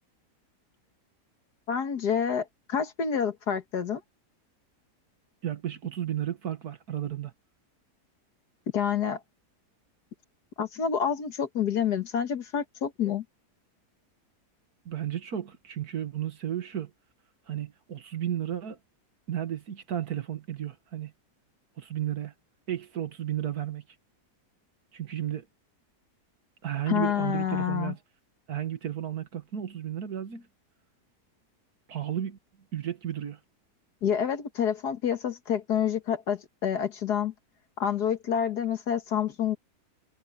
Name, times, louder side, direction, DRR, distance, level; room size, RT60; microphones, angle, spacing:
voice 1, 1.7-4.0 8.7-9.2 10.6-13.2 26.9-27.9 34.0-37.3 37.8-39.6, left 8 dB, 75° left, 2.1 m, -28 dB
voice 2, 5.4-7.3 14.9-16.9 17.5-18.8 19.3-21.1 21.8-22.3 22.7-23.8 24.9-25.5 26.6-28.0 28.5-30.5 31.9-32.4 32.7-33.4, right 10 dB, 65° right, 2.0 m, -33 dB
omnidirectional pair, 1.7 m